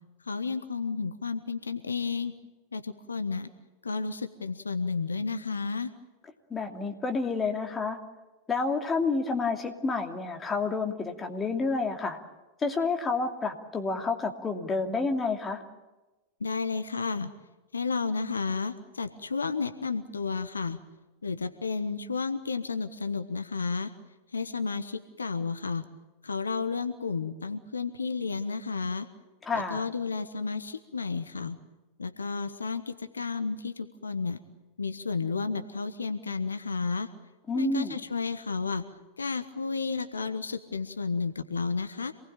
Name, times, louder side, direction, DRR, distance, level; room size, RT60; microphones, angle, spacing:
voice 1, 0.2-2.3 2.7-3.5 3.8-5.9 16.4-17.3 17.7-20.8 21.2-23.9 24.3-25.9 26.2-29.1 29.5-31.6 32.0-34.4 34.8-37.1 37.5-38.8 39.2-42.1, left 4 dB, 75° left, 10 dB, 1.2 m, -32 dB
voice 2, 6.5-8.0 8.5-12.2 12.6-15.6 29.4-29.8 37.5-38.0, left 4 dB, 15° left, 3 dB, 2.8 m, -29 dB
27.0 x 19.5 x 8.9 m, 1.1 s
figure-of-eight pair, 90°, 0 cm